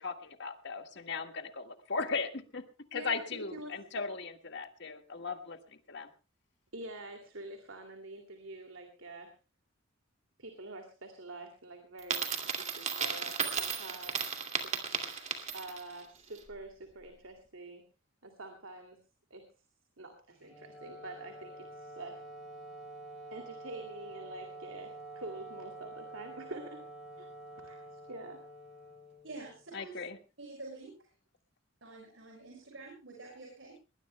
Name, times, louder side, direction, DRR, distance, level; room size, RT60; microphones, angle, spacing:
voice 1, 0.0-2.6 2.9-5.6 5.9-6.1 29.7-30.2, left 4 dB, 60° left, 6 dB, 1.8 m, -37 dB
voice 2, 2.9-3.9 6.7-9.3 10.4-14.2 14.6-14.8 15.5-17.8 18.2-19.0 19.3-19.5 20.0-22.2 23.3-26.9 27.2-27.3 27.6-28.5, right 2 dB, 85° right, 5 dB, 2.6 m, -46 dB
Coin (dropping), 12.0-15.9, right 6 dB, 35° right, 2.3 m, -35 dB
Wind instrument woodwind instrument, 20.4-29.7, right 2 dB, ahead, 7.9 m, -48 dB
voice 3, 29.2-30.0 30.4-31.0 31.8-33.8, right 3 dB, 70° right, 0 dB, 6.1 m, -47 dB
21.0 x 20.0 x 2.2 m, 0.32 s
head